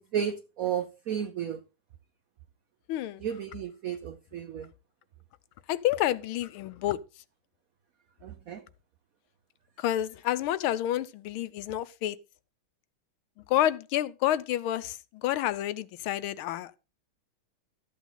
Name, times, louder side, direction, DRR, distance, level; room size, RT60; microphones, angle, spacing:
voice 1, 0.0-1.6 3.2-4.7 8.2-8.6, right 9 dB, 60° right, 0.9 m, -33 dB
voice 2, 2.9-3.2 5.7-7.0 9.8-12.2 13.5-16.8, left 13 dB, 85° left, 1.5 m, -29 dB
13.0 x 8.2 x 3.9 m
omnidirectional pair, 2.2 m